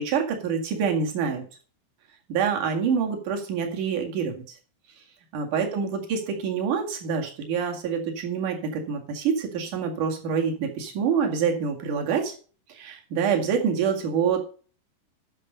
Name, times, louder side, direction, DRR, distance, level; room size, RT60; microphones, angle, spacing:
voice 1, 0.0-1.4 2.3-4.4 5.3-12.3 12.7-14.4, right 6 dB, 60° right, 2 dB, 3.3 m, -26 dB
12.0 x 6.0 x 5.5 m, 0.39 s
omnidirectional pair, 4.4 m